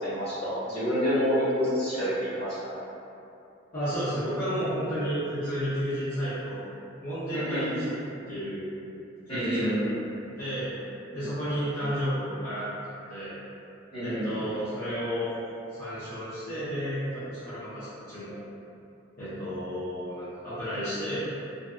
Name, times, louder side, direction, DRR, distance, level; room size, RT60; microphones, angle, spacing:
voice 1, 0.0-2.7 7.3-7.8 9.3-10.0 13.9-14.4, equal, 30° left, -14 dB, 1.1 m, -28 dB
voice 2, 3.7-6.6 7.0-7.9 8.3-8.7 9.3-9.7 10.4-10.7 11.1-13.3 14.0-15.3 15.8-18.4 19.2-21.2, equal, 50° left, -16 dB, 0.7 m, -32 dB
2.6 x 2.5 x 2.3 m, 2.7 s
head